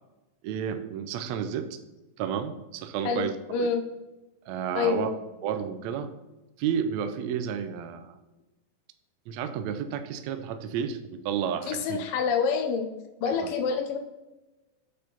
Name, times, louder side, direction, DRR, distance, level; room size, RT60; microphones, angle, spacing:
voice 1, 0.4-1.7 2.2-3.7 4.5-5.1 5.4-6.1 6.6-8.2 9.3-12.0 13.3-13.5, right 8 dB, 85° right, 8 dB, 1.6 m, -31 dB
voice 2, 3.0-3.8 4.7-5.1 11.7-12.9 13.2-14.0, left 5 dB, 90° left, 4 dB, 1.2 m, -27 dB
7.7 x 4.4 x 4.0 m, 1.0 s
omnidirectional pair, 3.9 m